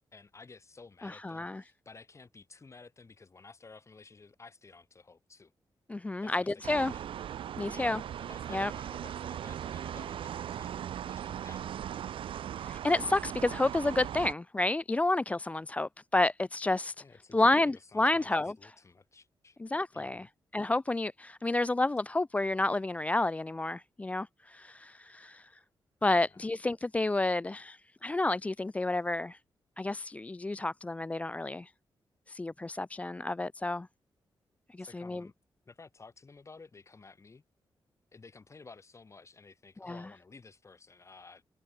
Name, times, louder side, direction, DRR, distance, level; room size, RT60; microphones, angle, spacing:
voice 1, 0.1-5.5 6.2-7.1 7.7-11.7 17.0-19.6 19.9-20.3 26.2-26.4 34.8-35.3 35.7-37.4 38.1-41.4, left 4 dB, 35° left, 5.2 m, -54 dB
voice 2, 1.0-1.6 5.9-6.9 7.6-8.0 8.5-8.7 12.6-16.9 17.3-18.7 19.6-20.3 20.5-25.5 26.0-29.4 29.8-31.7 32.3-33.9 34.8-35.2 39.8-40.0, left 2 dB, 15° left, 0.4 m, -30 dB
sound 1, 6.6-14.3, right 10 dB, 90° right, 0.8 m, -39 dB
wide cardioid pair, 110°, 9 cm